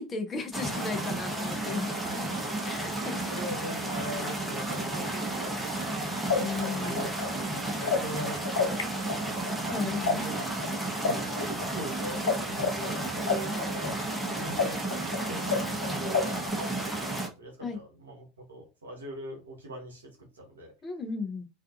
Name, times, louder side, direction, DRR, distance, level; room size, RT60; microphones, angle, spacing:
voice 1, 0.0-2.3 2.6-3.3 6.3-7.1 9.7-10.8 17.6-17.8 20.8-21.5, left 4 dB, 30° left, 0.6 m, -36 dB
sound 1, 0.5-17.3, right 2 dB, 5° right, 0.9 m, -32 dB
voice 2, 1.6-2.3 3.3-6.2 6.8-9.7 10.0-10.4 11.0-20.7, right 1 dB, 80° right, 0.9 m, -42 dB
sound 2, 5.9-6.0 6.3-8.8 9.1-12.3 12.6-16.5, left 5 dB, 80° left, 0.4 m, -29 dB
2.5 x 2.4 x 2.5 m
figure-of-eight pair, 75°, 0 cm